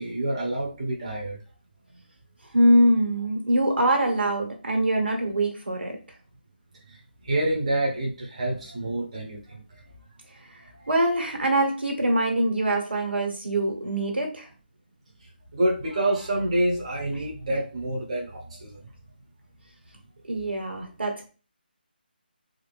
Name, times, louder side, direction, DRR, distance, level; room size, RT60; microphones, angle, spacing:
voice 1, 0.0-1.4 7.2-9.6 10.8-10.9 15.5-18.8, right 1 dB, 35° right, -3 dB, 0.8 m, -27 dB
voice 2, 2.5-6.0 10.5-10.6 10.9-14.5 20.3-21.3, right 1 dB, 90° right, 2 dB, 1.4 m, -23 dB
3.5 x 2.6 x 3.4 m, 0.36 s
figure-of-eight pair, 170°, 6 cm